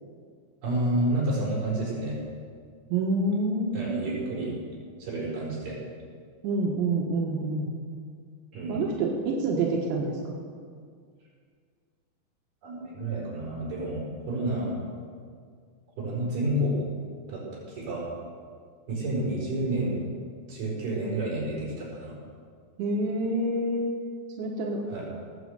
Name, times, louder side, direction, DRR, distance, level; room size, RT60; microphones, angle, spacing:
voice 1, 0.6-2.2 3.7-4.5 5.0-5.8 8.5-8.9 12.6-14.8 16.0-16.7 17.3-17.4 17.7-18.0 18.9-20.0 20.5-22.1 24.9-25.0, right 1 dB, 50° right, -6 dB, 6.0 m, -29 dB
voice 2, 2.9-4.4 6.4-7.7 8.7-10.4 22.8-24.0 24.4-24.8, right 2 dB, 85° right, -2 dB, 3.6 m, -27 dB
19.0 x 6.4 x 8.0 m, 2.1 s
omnidirectional pair, 5.1 m